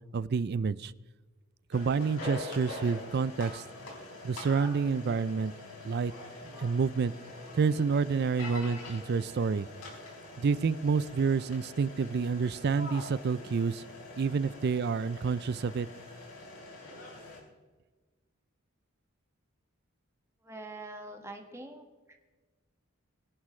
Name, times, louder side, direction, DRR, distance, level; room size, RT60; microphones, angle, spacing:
voice 1, 0.1-0.9 1.7-3.6 4.2-5.5 5.8-6.1 6.5-7.1 7.5-9.7 10.4-13.8 14.2-15.9, right 5 dB, 50° right, 18 dB, 0.4 m, -28 dB
sound 1, 1.7-17.4, left 2 dB, 85° left, 4.1 m, -45 dB
voice 2, 20.4-21.8, right 2 dB, 15° right, 3 dB, 1.7 m, -44 dB
21.0 x 11.0 x 3.2 m, 1.3 s
head